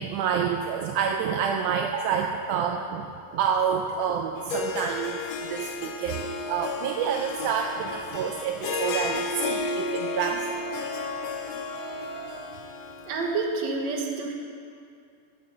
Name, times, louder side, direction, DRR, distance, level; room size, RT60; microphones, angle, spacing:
voice 1, 0.0-10.5, right 7 dB, 80° right, 2 dB, 1.8 m, -28 dB
Harp, 4.4-13.4, left 3 dB, 80° left, 1.4 m, -33 dB
sound 1, 8.7-9.0 10.0-11.4 11.7-12.6, right 4 dB, 65° left, 0.3 m, -41 dB
voice 2, 13.1-14.3, right 3 dB, 65° right, 1 dB, 2.1 m, -28 dB
13.0 x 5.7 x 6.4 m, 2.4 s
omnidirectional pair, 3.9 m